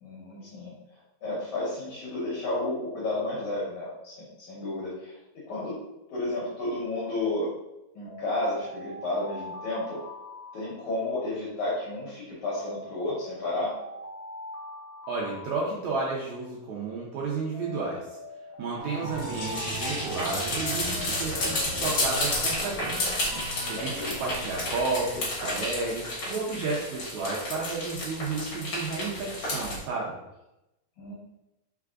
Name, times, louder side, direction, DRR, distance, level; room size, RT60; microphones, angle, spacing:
voice 1, 0.0-0.7 1.2-5.2 5.5-5.7 6.1-7.5 8.0-10.0 10.5-13.7 23.8-24.2 31.0-31.1, left 2 dB, 65° left, -7 dB, 2.1 m, -32 dB
Alarm, 8.0-11.4 12.5-16.4 17.5-20.8, left 1 dB, 85° left, 1.2 m, -43 dB
voice 2, 15.1-18.0 18.6-23.2 23.7-23.9 24.2-30.2, right 3 dB, 80° right, -4 dB, 1.6 m, -32 dB
sound 1, 18.8-25.3, right 2 dB, 65° right, 1.3 m, -39 dB
sound 2, 19.1-29.8, left 1 dB, 50° left, 1.7 m, -31 dB
4.6 x 4.2 x 2.4 m, 0.92 s
omnidirectional pair, 4.1 m